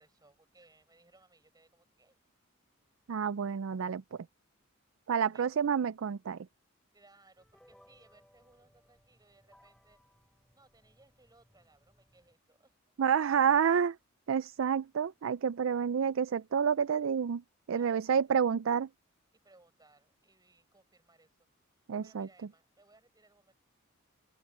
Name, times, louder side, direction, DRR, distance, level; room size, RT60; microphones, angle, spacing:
voice 1, 0.0-2.2 5.3-5.5 6.9-10.0 10.5-12.8 13.1-13.2 17.7-18.4 19.3-21.4 21.7-23.6, right 2 dB, 20° right, 5.7 m, -64 dB
voice 2, 3.1-4.2 5.1-6.4 13.0-14.0 14.3-17.4 17.7-18.9 21.9-22.3, right 7 dB, 65° right, 0.4 m, -29 dB
sound 1, 7.4-12.3, equal, 5° left, 4.0 m, -65 dB
head